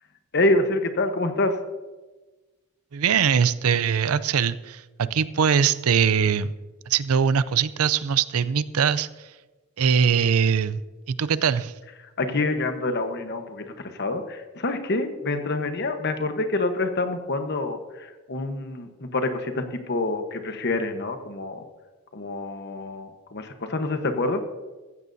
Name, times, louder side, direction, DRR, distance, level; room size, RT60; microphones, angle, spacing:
voice 1, 0.3-1.6 12.2-21.7 22.1-24.4, left 2 dB, 50° left, 7 dB, 1.2 m, -27 dB
voice 2, 2.9-6.5 6.9-9.1 9.8-10.8 11.1-11.7, right 7 dB, 85° right, 16 dB, 0.5 m, -22 dB
15.5 x 14.0 x 2.7 m, 1.2 s
head